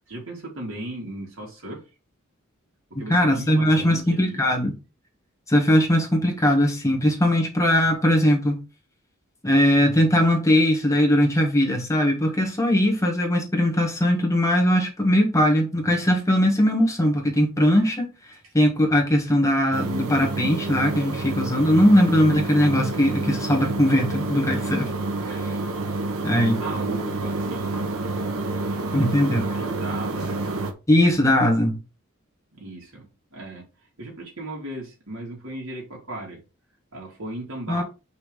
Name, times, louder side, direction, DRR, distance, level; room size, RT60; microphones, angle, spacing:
voice 1, 0.0-1.8 2.9-4.4 26.6-28.0 28.7-30.4 32.5-33.1 33.3-33.7 34.0-36.4 36.9-37.8, right 1 dB, 70° right, 3.1 m, -36 dB
voice 2, 3.1-4.7 5.5-8.6 9.4-18.1 18.5-24.9 25.2-25.6 26.2-26.6 28.9-29.5 30.9-31.8 37.7-37.8, left 1 dB, 15° left, 1.6 m, -20 dB
sound 1, 19.7-30.7, right 2 dB, 85° right, 1.2 m, -28 dB
5.6 x 3.8 x 4.8 m
head